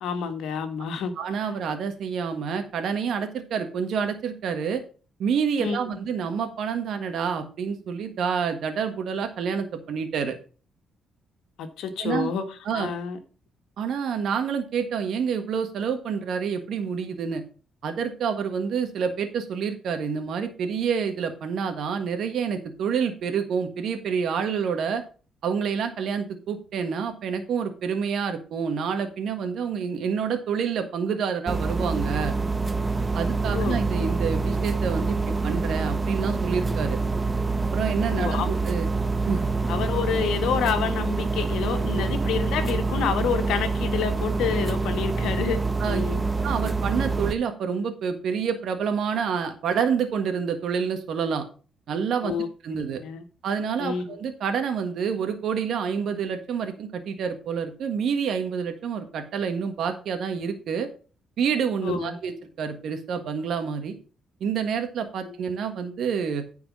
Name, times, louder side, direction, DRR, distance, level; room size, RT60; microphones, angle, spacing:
voice 1, 0.0-1.1 5.6-6.0 11.6-12.4 12.7-13.2 33.5-33.8 38.1-38.5 39.7-46.3 52.2-52.5 52.9-53.2 53.8-54.2 61.8-62.1 65.2-65.3, left 7 dB, 85° left, 1.5 m, -28 dB
voice 2, 1.2-4.8 5.2-10.4 12.0-12.3 12.6-12.9 13.8-17.4 17.8-25.0 25.4-32.3 33.1-35.2 35.4-37.0 37.7-38.9 39.3-39.5 41.9-42.1 45.8-46.0 46.4-51.4 51.9-53.0 53.4-60.9 61.4-64.0 64.4-66.4, right 6 dB, 70° right, 1.5 m, -28 dB
sound 1, 31.5-47.3, right 3 dB, 20° right, 0.8 m, -26 dB
9.5 x 4.7 x 6.1 m
cardioid pair, 90°, 0 cm